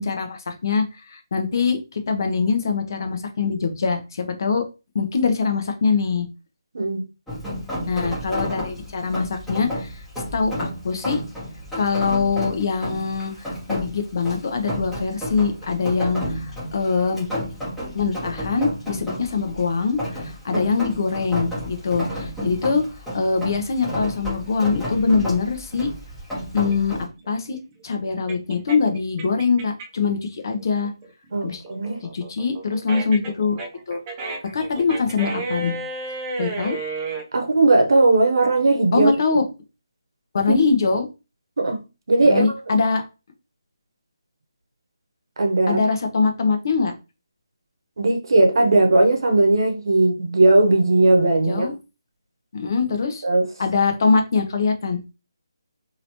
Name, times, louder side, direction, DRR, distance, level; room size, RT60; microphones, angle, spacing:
voice 1, 0.0-4.6 4.9-6.3 7.9-10.0 10.3-11.2 11.8-17.3 17.9-22.8 23.1-25.9 26.5-27.0 27.3-27.6 27.8-30.9 31.4-31.6 32.0-33.6 33.9-34.0 34.5-35.8 36.4-36.8 38.9-39.4 40.3-41.1 42.2-43.0 45.7-46.9 51.5-51.7 52.5-53.2 53.6-55.0, left 4 dB, 50° left, 0.8 m, -23 dB
Rain, 7.3-27.1, equal, ahead, 1.0 m, -32 dB
sound 1, 26.7-30.1 30.5-37.2, right 3 dB, 25° right, 0.6 m, -32 dB
voice 2, 31.3-32.0 37.3-39.1 41.6-41.8 42.1-42.4 45.4-45.8 48.0-51.7 53.2-53.4, right 2 dB, 60° right, 0.9 m, -18 dB
3.1 x 2.8 x 2.8 m
figure-of-eight pair, 155°, 3 cm